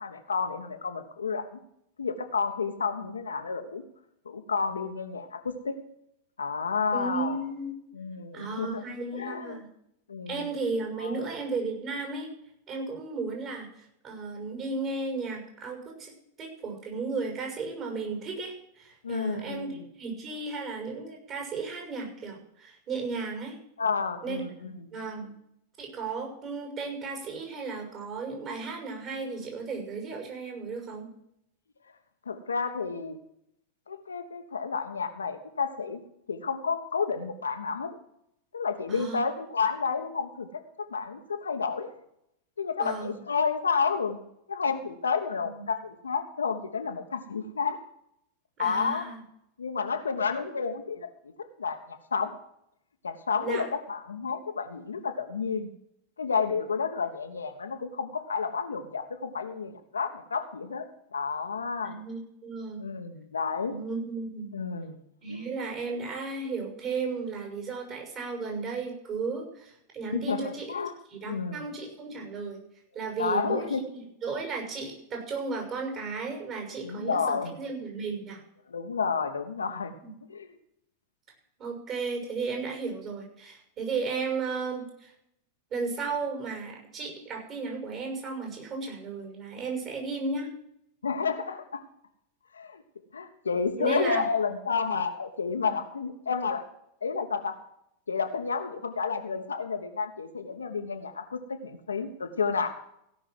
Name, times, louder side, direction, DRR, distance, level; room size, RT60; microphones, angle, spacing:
voice 1, 0.0-1.6 2.0-3.8 4.2-5.8 6.4-7.4 7.9-8.8 9.1-9.6 10.1-10.4 11.0-11.2 19.0-19.8 23.8-24.9 32.3-33.2 33.9-36.0 36.3-38.0 38.5-40.6 40.9-41.9 42.6-44.2 44.5-47.8 48.6-49.1 49.6-51.1 51.6-52.3 53.0-55.7 56.2-60.9 61.1-62.0 62.8-63.8 64.5-65.0 65.3-65.4 70.1-70.9 71.2-71.6 73.2-73.8 76.8-77.5 78.7-79.9 80.3-80.5 91.0-91.8 92.5-92.8 93.1-96.6 97.0-97.6 98.1-102.7, left 5 dB, 75° left, 6 dB, 1.2 m, -30 dB
voice 2, 6.9-7.8 8.3-9.7 10.3-12.3 12.7-16.1 16.4-23.6 24.2-25.3 25.8-31.1 38.9-39.2 42.8-43.2 45.4-45.5 48.6-49.2 53.4-53.7 61.8-62.8 63.7-64.5 65.2-70.7 71.1-72.6 72.9-73.7 73.9-78.4 80.0-80.1 81.6-85.1 85.7-90.5 93.8-94.2, right 4 dB, 35° right, 1 dB, 6.3 m, -34 dB
16.5 x 6.2 x 7.7 m, 0.75 s
figure-of-eight pair, 90°, 0 cm